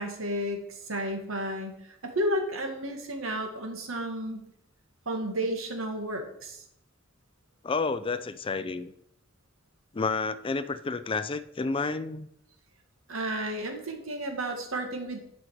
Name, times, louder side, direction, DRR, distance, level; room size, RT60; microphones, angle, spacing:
voice 1, 0.0-1.7 2.0-4.4 5.1-6.6 13.1-15.2, right 1 dB, 85° right, 4 dB, 1.7 m, -32 dB
voice 2, 7.6-8.9 9.9-12.3, left 4 dB, 25° left, 13 dB, 0.4 m, -30 dB
11.0 x 5.3 x 4.9 m, 0.75 s
head